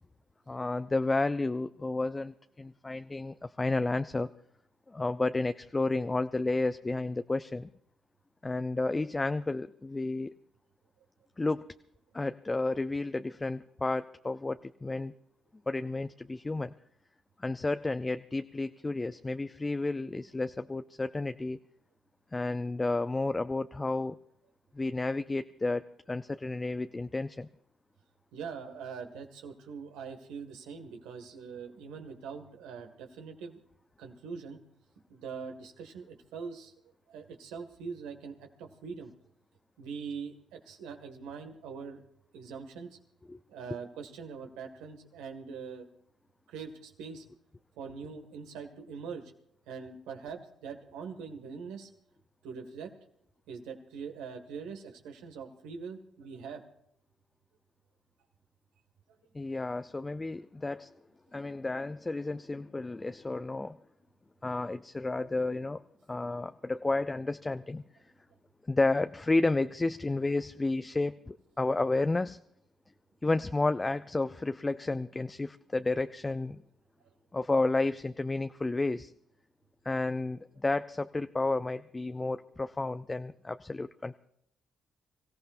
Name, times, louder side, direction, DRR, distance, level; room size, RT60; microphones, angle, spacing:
voice 1, 0.5-4.3 4.9-7.7 8.4-10.3 11.4-11.7 12.1-15.1 15.7-16.7 17.4-21.6 22.3-24.2 24.7-27.5 43.3-43.4 59.3-60.9 61.3-63.8 64.4-65.8 66.1-67.8 68.7-72.4 73.2-76.6 77.3-79.1 79.9-84.2, left 2 dB, 25° left, 10 dB, 0.5 m, -31 dB
voice 2, 28.3-33.6 34.0-34.6 35.1-39.1 39.8-42.0 42.3-43.0 43.5-45.9 46.5-47.3 47.8-49.3 49.7-51.9 52.4-52.9 53.5-56.6 77.0-77.1, right 5 dB, 85° right, 5 dB, 1.9 m, -43 dB
25.5 x 15.0 x 2.6 m, 0.73 s
supercardioid pair, 60°, 0 cm